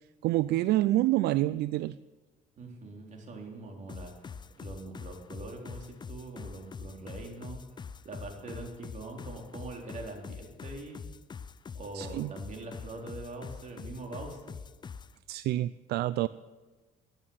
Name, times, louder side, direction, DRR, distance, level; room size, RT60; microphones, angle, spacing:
voice 1, 0.2-2.0 11.9-12.3 15.3-16.3, right 15 dB, 75° right, 16 dB, 0.4 m, -27 dB
voice 2, 2.6-4.1 4.6-7.6 8.0-11.0 11.7-14.6, right 2 dB, 45° right, 1 dB, 3.9 m, -43 dB
sound 1, 3.9-15.1, left 6 dB, 25° left, 0.5 m, -44 dB
14.5 x 11.0 x 8.8 m, 1.3 s
cardioid pair, 110°, 17 cm